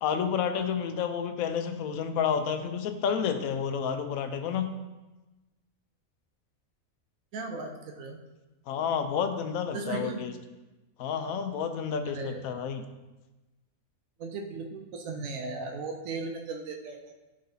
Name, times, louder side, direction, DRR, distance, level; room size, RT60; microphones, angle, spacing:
voice 1, 0.0-4.7 8.7-10.3 11.0-12.8, left 7 dB, 85° left, 8 dB, 1.0 m, -30 dB
voice 2, 7.3-8.2 9.7-10.2 12.1-12.4 14.2-17.2, right 3 dB, 75° right, 3 dB, 1.1 m, -37 dB
11.5 x 3.9 x 2.7 m, 1.1 s
omnidirectional pair, 1.4 m